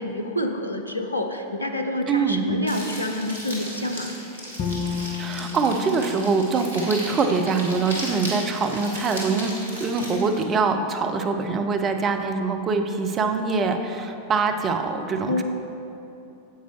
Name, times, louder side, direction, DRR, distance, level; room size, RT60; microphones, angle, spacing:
voice 1, 0.0-4.1 15.2-15.4, left 1 dB, 85° left, 4 dB, 0.5 m, -28 dB
voice 2, 2.1-2.6 5.2-9.5 9.8-15.4, right 4 dB, 25° right, 5 dB, 0.6 m, -24 dB
sound 1, 2.7-10.4, equal, 75° right, 1.8 m, -36 dB
Bowed string instrument, 4.6-7.7, left 6 dB, 40° left, 0.7 m, -33 dB
9.3 x 8.0 x 3.1 m, 2.8 s
figure-of-eight pair, 90°, 0 cm